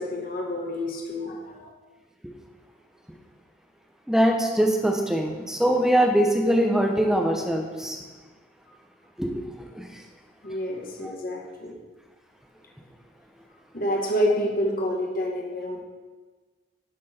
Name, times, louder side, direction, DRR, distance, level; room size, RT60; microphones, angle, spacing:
voice 1, 0.0-1.7 10.4-11.8 13.7-15.8, equal, 45° left, -1 dB, 1.4 m, -28 dB
voice 2, 4.1-8.0 9.2-9.4 9.7-9.9 11.0-11.1, right 1 dB, 5° right, 1 dB, 0.8 m, -22 dB
12.0 x 6.1 x 4.4 m, 1.3 s
head